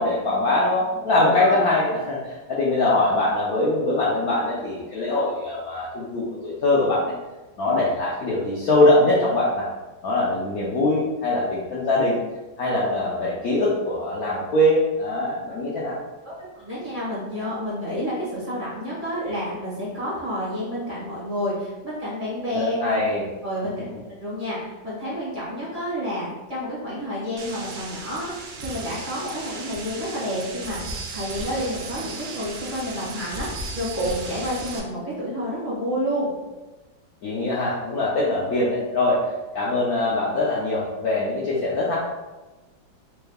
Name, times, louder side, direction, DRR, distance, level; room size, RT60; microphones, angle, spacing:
voice 1, 0.0-7.1 7.6-9.7 10.0-12.2 12.6-16.0 22.5-23.2 37.2-39.2 39.5-41.9, left 2 dB, 65° left, -6 dB, 0.9 m, -22 dB
voice 2, 16.2-22.9 23.4-23.8 24.2-36.3, equal, 25° right, -9 dB, 1.4 m, -29 dB
sound 1, 27.4-34.8, right 3 dB, 80° right, 1.4 m, -35 dB
4.3 x 3.3 x 2.3 m, 1.1 s
omnidirectional pair, 2.2 m